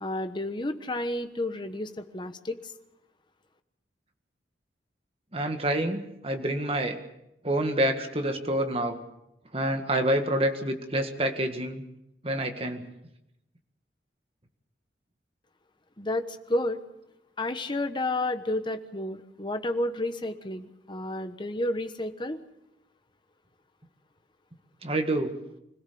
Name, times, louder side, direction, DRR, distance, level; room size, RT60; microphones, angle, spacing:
voice 1, 0.0-2.7 16.0-16.8 17.4-22.4, left 1 dB, 25° left, 8 dB, 1.2 m, -31 dB
voice 2, 5.3-6.9 7.4-9.0 9.5-11.8 12.2-12.8 24.8-25.3, right 1 dB, 30° right, 5 dB, 1.9 m, -27 dB
25.5 x 17.0 x 7.0 m, 0.86 s
head